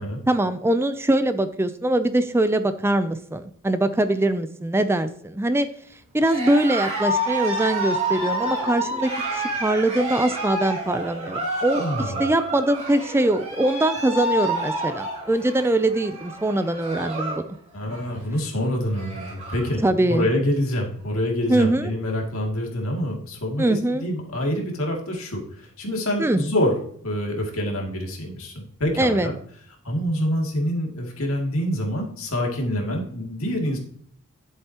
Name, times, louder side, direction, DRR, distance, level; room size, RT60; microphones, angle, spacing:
voice 1, 0.3-5.7 6.1-17.6 19.8-20.3 21.5-21.9 23.6-24.1 26.2-26.4 29.0-29.3, right 1 dB, 10° right, 11 dB, 0.4 m, -22 dB
Cheering, 6.2-17.5 17.8-18.2 18.6-18.7 18.9-19.7, right 1 dB, 30° right, 3.5 m, -29 dB
voice 2, 11.7-12.2 17.7-19.8 20.1-29.3 29.8-33.8, equal, 70° left, 1 dB, 2.5 m, -26 dB
11.0 x 7.9 x 2.9 m, 0.63 s
head